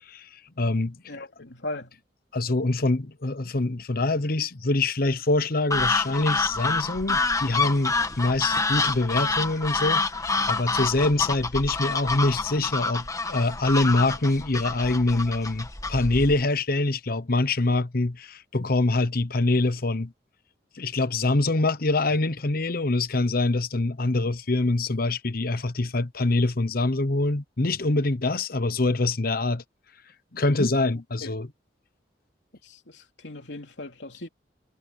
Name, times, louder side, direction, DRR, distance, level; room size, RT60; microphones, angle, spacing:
voice 1, 0.6-1.0 2.3-10.0 10.5-20.1 20.7-29.6 30.3-31.5, left 2 dB, 55° left, 1.0 m, -24 dB
voice 2, 1.1-2.0 30.5-30.8 31.2-31.3 32.6-34.3, left 2 dB, 80° left, 3.2 m, -36 dB
sound 1, 5.7-16.4, left 3 dB, 20° left, 1.5 m, -27 dB
head